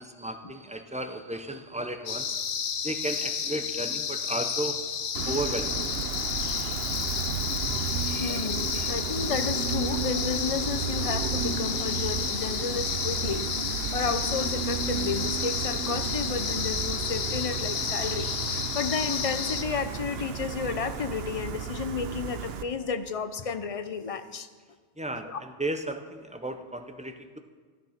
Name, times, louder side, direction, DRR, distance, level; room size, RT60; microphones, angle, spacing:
voice 1, 0.0-2.4 2.8-4.8 5.3-5.7 8.1-8.5 8.7-8.9 25.0-27.4, right 1 dB, 10° right, 7 dB, 0.4 m, -34 dB
sound 1, 2.1-19.6, left 7 dB, 85° left, 1.2 m, -31 dB
Gull seagull, 5.1-22.6, right 7 dB, 60° right, 0.9 m, -33 dB
voice 2, 8.2-24.5 25.2-25.4, left 5 dB, 45° left, 10 dB, 0.5 m, -32 dB
12.0 x 12.0 x 5.8 m, 1.5 s
omnidirectional pair, 1.2 m